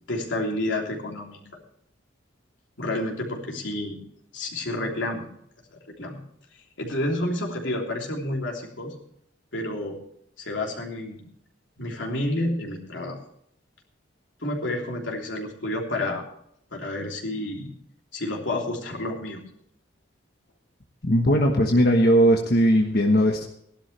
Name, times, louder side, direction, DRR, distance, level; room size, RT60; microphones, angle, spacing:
voice 1, 0.1-1.4 2.8-4.0 4.3-5.3 6.0-6.2 6.8-8.9 9.5-10.0 10.4-11.2 11.8-13.2 14.4-16.2 16.7-17.7 18.1-19.4, left 1 dB, 90° left, -1 dB, 3.2 m, -29 dB
voice 2, 21.0-23.5, equal, 55° left, 1 dB, 1.3 m, -19 dB
17.5 x 12.0 x 3.4 m, 0.71 s
head